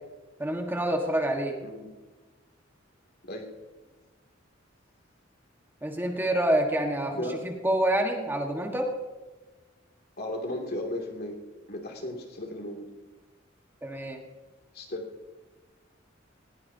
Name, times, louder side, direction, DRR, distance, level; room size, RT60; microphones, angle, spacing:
voice 1, 0.4-1.6 5.8-7.1 7.4-8.9 13.8-14.2, right 1 dB, 10° right, 2 dB, 1.5 m, -27 dB
voice 2, 1.6-2.0 3.2-3.6 7.1-7.4 10.2-11.4 11.7-12.9 14.7-15.1, left 1 dB, 55° left, 1 dB, 2.6 m, -35 dB
19.5 x 17.5 x 2.8 m, 1.2 s
head